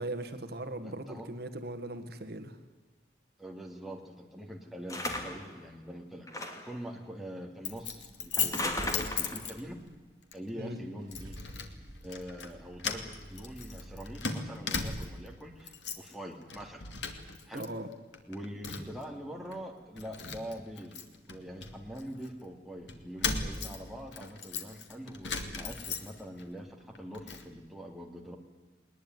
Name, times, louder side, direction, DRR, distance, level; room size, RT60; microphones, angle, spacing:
voice 1, 0.0-2.6 10.6-10.8 17.5-17.9, right 1 dB, 55° right, 8 dB, 1.6 m, -39 dB
voice 2, 0.8-1.3 3.4-6.3 6.6-9.8 10.3-11.4 12.0-16.8 17.5-17.7 18.3-28.4, equal, ahead, 1 dB, 2.6 m, -44 dB
sound 1, 4.9-5.5 6.3-6.8 8.4-9.5, left 1 dB, 20° left, 2.6 m, -35 dB
Keys jangling, 7.6-9.9 10.3-10.5 11.1-11.7 12.0-12.5 12.8-15.3 15.6-16.1 16.5-17.7 17.9-19.0 19.5-19.6 20.0-22.3 22.9-26.4 26.8-27.5, left 5 dB, 75° left, 2.5 m, -37 dB
Car / Engine starting / Idling, 10.7-14.2, equal, 20° right, 2.5 m, -48 dB
21.0 x 20.5 x 9.4 m, 1.3 s
head